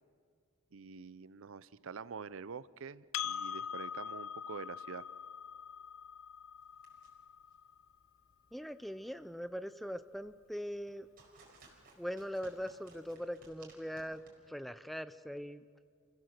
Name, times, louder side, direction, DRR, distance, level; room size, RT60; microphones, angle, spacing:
voice 1, 0.7-5.0, right 5 dB, 70° right, 18 dB, 0.5 m, -46 dB
Percussion, 3.1-8.0, left 8 dB, 70° left, 0.5 m, -43 dB
sound 1, 6.6-14.3, right 3 dB, 45° right, 4.6 m, -63 dB
voice 2, 8.5-11.1 12.0-14.2 14.5-15.6, equal, ahead, 12 dB, 0.4 m, -41 dB
28.5 x 16.0 x 6.6 m, 2.1 s
head